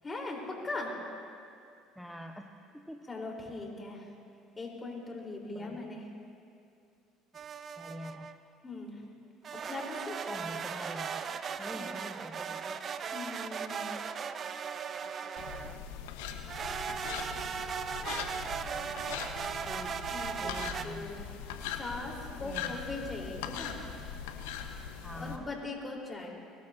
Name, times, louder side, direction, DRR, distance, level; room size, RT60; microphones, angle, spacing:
voice 1, 0.0-1.0 3.1-4.1 4.6-6.0 8.6-9.0 9.5-10.2 11.7-11.8 13.1-13.9 20.1-20.6 20.8-21.2 21.8-23.8 25.1-26.3, left 2 dB, 25° left, -1 dB, 4.2 m, -40 dB
voice 2, 2.0-3.1 5.5-5.9 7.8-8.3 10.3-11.2 11.6-12.9 19.7-20.0 20.3-21.4 22.4-22.8 25.0-25.5, equal, ahead, 3 dB, 1.0 m, -45 dB
sound 1, 7.3-8.4 9.4-15.8 16.5-20.8, right 7 dB, 45° right, 0.8 m, -38 dB
sound 2, 15.4-25.4, left 7 dB, 75° left, 1.2 m, -41 dB
24.0 x 19.5 x 2.8 m, 2.5 s
hypercardioid pair, 65°, 0 cm